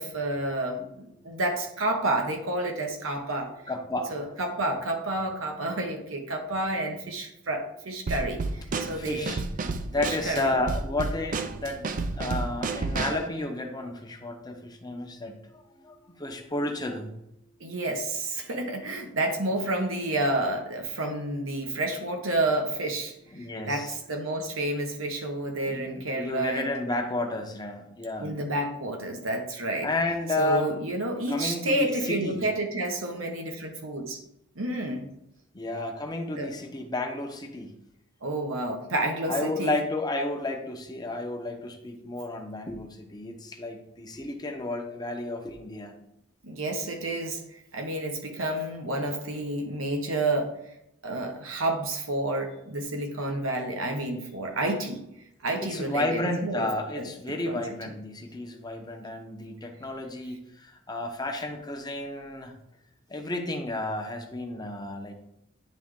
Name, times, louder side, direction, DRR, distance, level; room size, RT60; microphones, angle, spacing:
voice 1, 0.0-3.5 4.1-9.4 9.6-9.7 10.0-10.6 17.6-23.1 23.7-26.7 28.2-29.9 30.4-34.2 34.5-35.1 36.4-36.5 38.2-39.8 46.4-47.4 47.7-50.5 51.0-55.0 55.4-56.7 56.9-57.6, right 1 dB, 90° right, 3 dB, 1.2 m, -30 dB
voice 2, 3.7-4.4 8.9-9.4 9.9-17.2 23.3-23.9 25.7-28.3 29.8-30.8 31.3-32.5 35.5-37.7 39.3-45.9 55.6-62.5 63.1-65.1, left 2 dB, 20° left, 3 dB, 0.8 m, -32 dB
Drum kit / Snare drum, 8.1-13.3, right 3 dB, 40° right, 0.4 m, -31 dB
10.0 x 3.4 x 3.7 m, 0.81 s
head